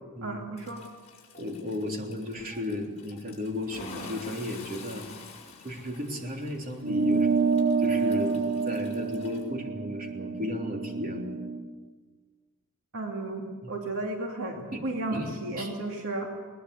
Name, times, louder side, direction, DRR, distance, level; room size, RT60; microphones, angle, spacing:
voice 1, 0.2-0.9 12.9-16.3, right 2 dB, 65° right, 1 dB, 2.4 m, -34 dB
Toilet flush, 0.6-9.4, left 3 dB, 30° left, 5.9 m, -48 dB
voice 2, 1.4-5.0 5.6-11.3 13.6-13.7 14.7-14.8 15.1-15.3 15.6-15.7, left 1 dB, 40° right, 1 dB, 3.4 m, -34 dB
sound 1, 6.8-11.6, right 5 dB, 90° right, 1.4 m, -28 dB
21.5 x 20.0 x 8.3 m, 1.4 s
head